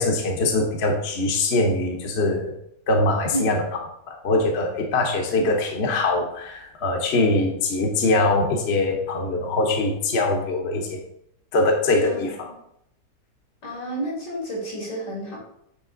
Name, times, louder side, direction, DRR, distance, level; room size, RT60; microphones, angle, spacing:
voice 1, 0.0-2.5 2.9-3.6 4.1-11.0 11.5-12.5, left 2 dB, 45° left, 2 dB, 1.0 m, -22 dB
voice 2, 12.0-12.5 13.6-15.4, right 1 dB, 80° left, -3 dB, 2.8 m, -31 dB
8.2 x 3.4 x 3.8 m, 0.75 s
omnidirectional pair, 1.8 m